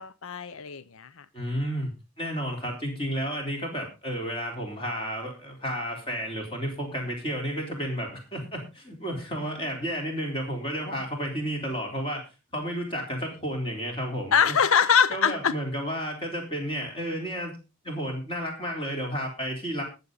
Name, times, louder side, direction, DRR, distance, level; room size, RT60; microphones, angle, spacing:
voice 1, 0.0-1.2 14.3-15.5, left 7 dB, 70° left, 15 dB, 0.6 m, -23 dB
voice 2, 1.3-1.9 2.2-12.2 12.5-14.6 15.1-17.6 17.8-19.8, equal, 25° left, 1 dB, 3.9 m, -32 dB
20.5 x 7.2 x 3.9 m, 0.29 s
head